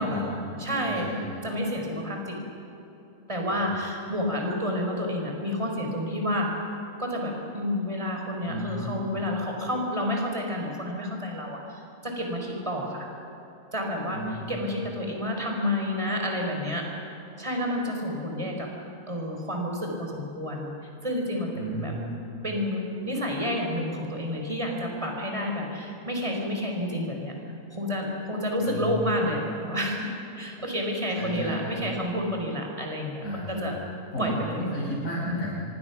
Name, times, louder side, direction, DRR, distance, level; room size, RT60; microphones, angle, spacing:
voice 1, 0.0-1.3 3.5-3.7 8.4-9.0 14.1-14.8 21.5-22.1 22.4-22.5 28.6-29.2 31.1-31.7 33.2-33.9 34.1-35.7, equal, 55° left, -8 dB, 6.4 m, -33 dB
voice 2, 0.6-1.1 1.4-2.4 3.3-6.5 7.0-13.1 13.7-16.9 17.4-18.7 19.1-20.7 21.0-21.9 22.4-27.3 27.7-30.1 30.4-33.8 34.2-34.7, left 1 dB, 20° right, 0 dB, 4.7 m, -30 dB
26.0 x 24.0 x 6.0 m, 2.9 s
omnidirectional pair, 1.7 m